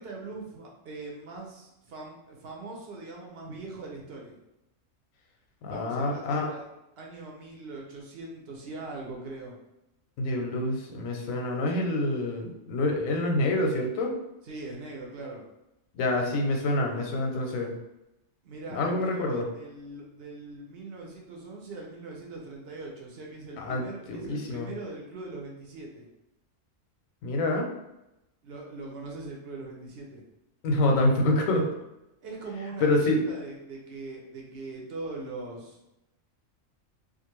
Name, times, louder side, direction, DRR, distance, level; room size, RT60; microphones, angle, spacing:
voice 1, 0.0-4.4 5.7-6.7 7.0-9.6 14.4-15.4 18.4-26.1 28.4-30.2 32.2-35.8, right 3 dB, 60° right, -1 dB, 0.8 m, -41 dB
voice 2, 5.6-6.5 10.2-14.1 15.9-17.7 18.7-19.4 23.6-24.7 27.2-27.7 30.6-31.7 32.8-33.2, left 2 dB, 90° left, 2 dB, 1.0 m, -27 dB
2.5 x 2.4 x 2.9 m, 0.92 s
omnidirectional pair, 1.3 m